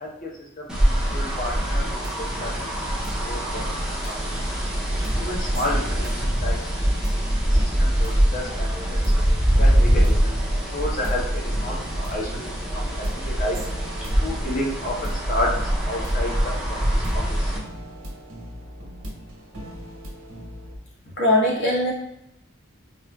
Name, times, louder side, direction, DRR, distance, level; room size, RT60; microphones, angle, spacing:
voice 1, 0.0-1.9 2.1-3.0 3.2-4.0 4.2-4.6 5.2-9.0 9.6-10.4 10.7-13.6 14.2-15.5 15.8-16.8 17.1-17.5, left 1 dB, 40° left, -2 dB, 0.7 m, -31 dB
sound 1, 0.7-17.6, equal, 5° right, 0.5 m, -23 dB
sound 2, 1.1-20.8, equal, 70° right, 0.9 m, -39 dB
voice 2, 21.2-21.9, left 1 dB, 55° left, -4 dB, 1.0 m, -20 dB
4.2 x 2.3 x 2.2 m, 0.81 s
head